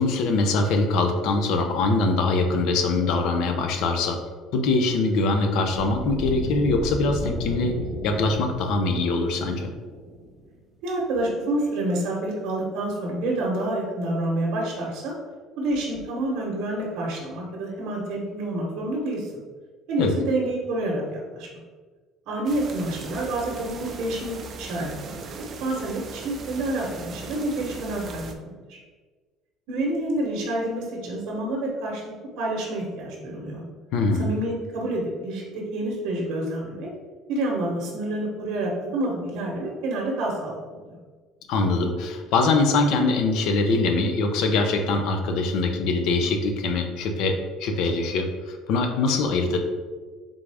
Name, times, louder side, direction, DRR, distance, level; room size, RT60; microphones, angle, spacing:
voice 1, 0.0-4.2 4.5-7.8 8.0-9.7 20.0-20.2 33.9-34.3 41.5-47.3 47.6-49.6, left 3 dB, 70° left, 5 dB, 0.5 m, -23 dB
sound 1, 5.7-10.6, equal, 5° right, 0.9 m, -34 dB
voice 2, 10.8-15.1 15.6-19.3 19.9-21.5 22.3-28.8 29.7-32.0 32.4-33.6 34.2-36.9 37.3-41.0, right 1 dB, 70° right, -3 dB, 0.9 m, -28 dB
sound 2, 22.5-28.3, right 4 dB, 40° right, 0.4 m, -39 dB
3.7 x 3.5 x 3.4 m, 1.4 s
cardioid pair, 140°, 0 cm